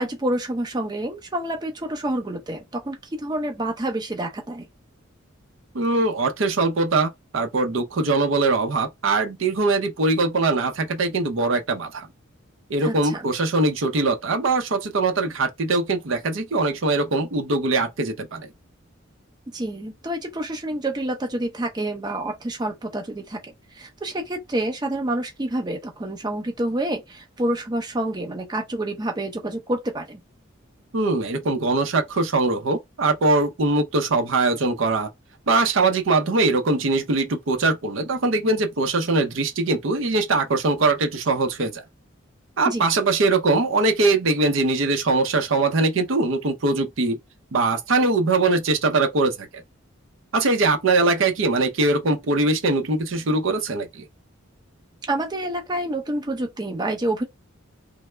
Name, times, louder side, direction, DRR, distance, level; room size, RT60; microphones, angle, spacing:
voice 1, 0.0-4.7 12.8-13.2 19.5-23.4 23.7-30.2 42.6-42.9 55.1-57.2, right 1 dB, 20° right, 0.6 m, -28 dB
voice 2, 5.7-12.1 12.7-18.5 30.9-35.1 35.5-41.8 42.6-47.2 47.5-49.6 50.3-54.1, right 3 dB, 65° right, 0.6 m, -22 dB
3.2 x 2.0 x 3.2 m
head